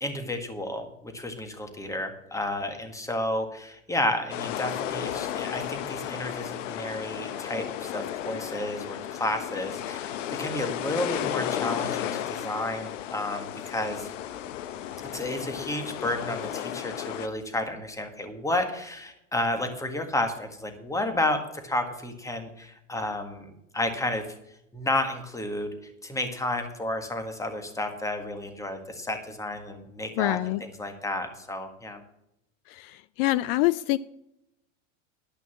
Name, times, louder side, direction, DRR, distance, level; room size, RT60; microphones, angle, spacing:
voice 1, 0.0-14.1 15.1-24.3 24.7-32.0, left 1 dB, 10° left, 6 dB, 1.6 m, -31 dB
sound 1, 4.3-17.3, left 11 dB, 75° left, 1.0 m, -34 dB
voice 2, 30.2-30.6 32.7-34.0, left 17 dB, 50° left, 18 dB, 0.4 m, -25 dB
11.5 x 5.9 x 7.2 m, 0.83 s
supercardioid pair, 115°, 38 cm